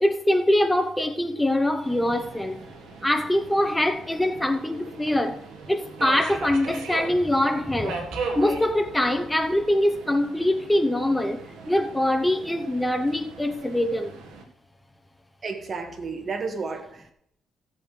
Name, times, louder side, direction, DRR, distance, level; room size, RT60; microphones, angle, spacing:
voice 1, 0.0-2.6 3.0-14.2, left 1 dB, 10° left, 0.8 m, -24 dB
Subway metro underground, 1.8-14.4, right 4 dB, 85° right, 1.6 m, -39 dB
voice 2, 15.4-17.1, right 4 dB, 40° right, 1.7 m, -32 dB
16.0 x 7.8 x 3.3 m
cardioid pair, 90°, 0 cm